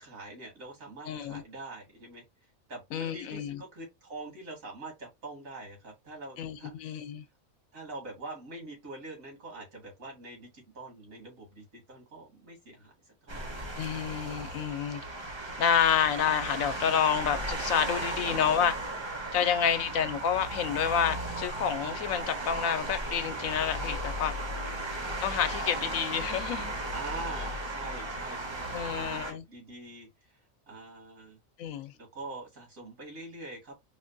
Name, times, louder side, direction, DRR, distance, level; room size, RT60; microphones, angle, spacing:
voice 1, 0.0-2.2 2.7-6.7 7.7-12.9 13.2-13.6 19.6-19.8 24.6-24.8 26.9-30.4 30.7-31.4 32.0-33.8, right 2 dB, 75° right, 2.4 m, -44 dB
voice 2, 1.1-1.4 2.9-3.6 6.4-7.2 13.8-15.0 15.6-18.7 19.3-24.3 25.2-26.7 28.7-29.4 31.6-31.9, left 8 dB, 80° left, 1.0 m, -29 dB
sound 1, 13.3-29.3, right 1 dB, 30° right, 0.6 m, -36 dB
4.9 x 2.2 x 2.5 m
omnidirectional pair, 1.4 m